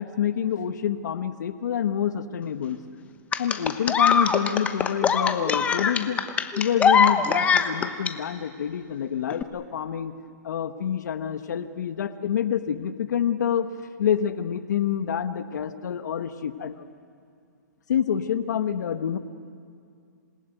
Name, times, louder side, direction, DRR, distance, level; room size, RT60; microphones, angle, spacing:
voice 1, 0.0-2.8 3.4-6.2 6.6-10.1 10.4-13.7 14.0-16.9 17.9-19.2, left 9 dB, 70° left, 10 dB, 1.3 m, -27 dB
sound 1, 3.3-8.1 9.3-9.4, left 6 dB, 15° left, 1.0 m, -21 dB
27.0 x 19.5 x 9.3 m, 2.4 s
hypercardioid pair, 145°, 10 cm